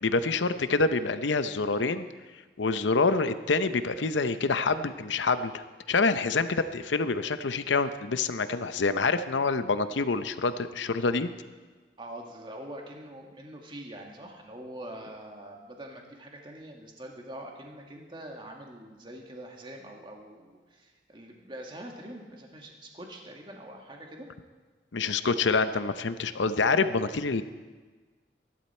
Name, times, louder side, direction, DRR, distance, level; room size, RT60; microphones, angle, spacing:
voice 1, 0.0-2.1 2.6-5.6 5.9-11.3 24.9-27.4, left 4 dB, 90° left, 11 dB, 0.7 m, -26 dB
voice 2, 12.0-24.3, right 1 dB, 25° right, 1 dB, 2.0 m, -44 dB
23.0 x 11.5 x 4.4 m, 1.4 s
head